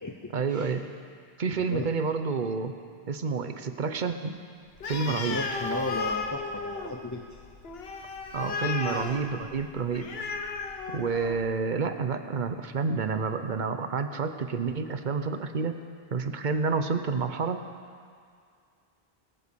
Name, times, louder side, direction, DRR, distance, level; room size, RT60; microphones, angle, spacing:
voice 1, 0.3-0.9 1.4-2.8 3.1-4.4 4.9-5.4 8.3-10.1 10.9-15.8 16.1-17.6, right 5 dB, 50° right, 8 dB, 0.9 m, -29 dB
Animal, 4.8-11.5, left 4 dB, 75° left, 1.3 m, -34 dB
voice 2, 5.1-7.4 8.5-9.0, left 2 dB, 20° left, 1 dB, 0.6 m, -35 dB
21.0 x 8.2 x 6.9 m, 2.2 s
omnidirectional pair, 1.0 m